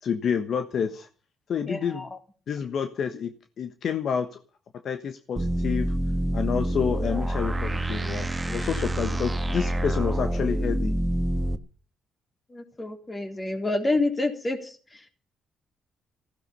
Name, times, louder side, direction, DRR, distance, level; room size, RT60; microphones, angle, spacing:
voice 1, 0.0-1.1 1.5-2.1 2.5-4.4 4.8-5.9 6.3-10.9, left 7 dB, 60° left, 8 dB, 1.2 m, -29 dB
voice 2, 1.6-2.2 12.5-15.1, left 2 dB, 20° left, 5 dB, 3.6 m, -29 dB
sound 1, 5.4-11.6, right 1 dB, 20° right, 1.3 m, -27 dB
15.5 x 15.0 x 5.7 m, 0.41 s
cardioid pair, 90°, 0 cm